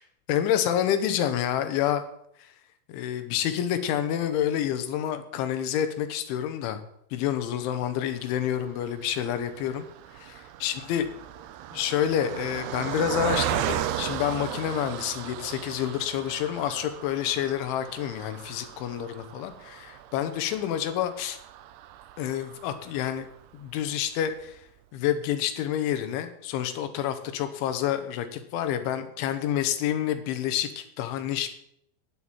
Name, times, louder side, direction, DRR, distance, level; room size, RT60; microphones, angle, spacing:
voice 1, 0.3-2.0 2.4-2.5 2.9-6.8 7.1-9.9 10.1-11.0 11.7-21.4 22.2-23.3 23.5-24.6 24.9-31.5, left 10 dB, 75° left, 9 dB, 3.4 m, -28 dB
Car passing by, 8.1-23.5 24.1-24.2 24.4-24.6, right 11 dB, 90° right, 2.3 m, -36 dB
10.5 x 7.9 x 8.8 m, 0.71 s
omnidirectional pair, 5.7 m